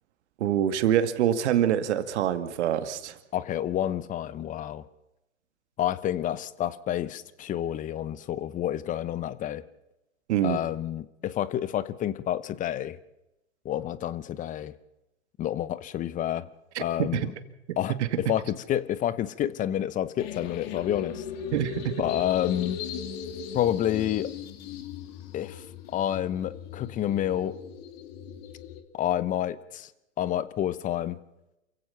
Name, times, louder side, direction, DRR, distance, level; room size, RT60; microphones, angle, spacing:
voice 1, 0.4-3.2 10.3-10.6 16.8-17.3 21.5-21.9, right 10 dB, 60° right, 9 dB, 2.2 m, -25 dB
voice 2, 3.3-4.8 5.8-9.6 10.4-13.0 13.6-14.7 15.4-16.5 16.8-17.3 17.8-21.2 22.0-22.8 23.5-24.3 25.3-27.6 28.9-29.9 30.2-31.2, left 11 dB, 20° left, 17 dB, 0.8 m, -29 dB
sound 1, 20.2-28.8, left 8 dB, 50° left, 2.7 m, -38 dB
28.0 x 16.0 x 5.8 m, 0.90 s
hypercardioid pair, 120°, 39 cm